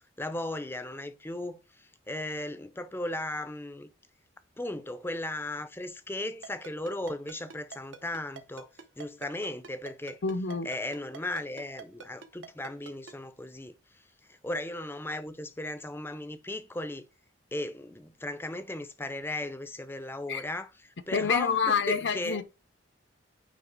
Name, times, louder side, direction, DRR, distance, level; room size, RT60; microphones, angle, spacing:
voice 1, 0.2-3.9 4.6-8.7 9.0-10.2 10.6-14.0 14.3-17.0 17.5-22.4, left 1 dB, 10° left, 0.5 m, -36 dB
Ringtone, 6.4-13.1, right 5 dB, 70° right, 0.9 m, -44 dB
voice 2, 10.2-10.7 20.3-20.4 21.1-22.4, left 5 dB, 60° left, 0.6 m, -27 dB
9.3 x 3.3 x 4.5 m
head